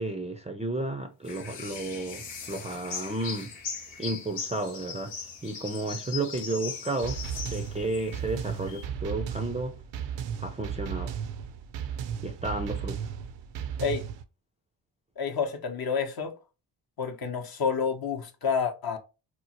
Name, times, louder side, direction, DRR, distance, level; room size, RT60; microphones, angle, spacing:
voice 1, 0.0-3.5 4.0-5.1 5.4-7.2 7.5-9.7 10.4-11.2 12.2-13.0, right 2 dB, 15° right, 0.4 m, -32 dB
sound 1, 1.2-8.8, left 5 dB, 90° left, 0.9 m, -39 dB
sound 2, 7.0-14.2, right 8 dB, 60° right, 0.5 m, -35 dB
voice 2, 15.2-16.3 17.0-19.0, left 6 dB, 45° left, 0.7 m, -29 dB
2.9 x 2.0 x 2.8 m
supercardioid pair, 50°, 49 cm